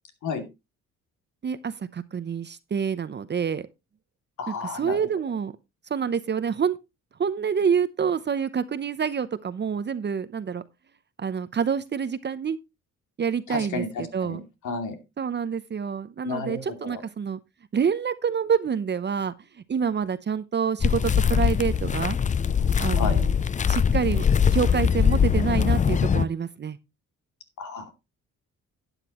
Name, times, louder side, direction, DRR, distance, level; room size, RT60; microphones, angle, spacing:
voice 1, 1.4-3.7 4.5-5.5 5.9-6.8 7.2-10.6 11.2-12.6 13.2-14.4 15.2-17.4 17.7-19.3 19.7-22.2 22.8-23.4 23.7-24.3 24.5-26.8, right 7 dB, 35° right, 0.7 m, -27 dB
voice 2, 4.4-5.0 13.5-14.4 14.6-15.0 16.2-17.0 22.9-23.2 27.6-27.9, left 4 dB, 75° left, 2.6 m, -32 dB
sound 1, 20.8-26.3, left 7 dB, 25° left, 0.5 m, -22 dB
12.0 x 9.1 x 3.0 m
cardioid pair, 90°, 30 cm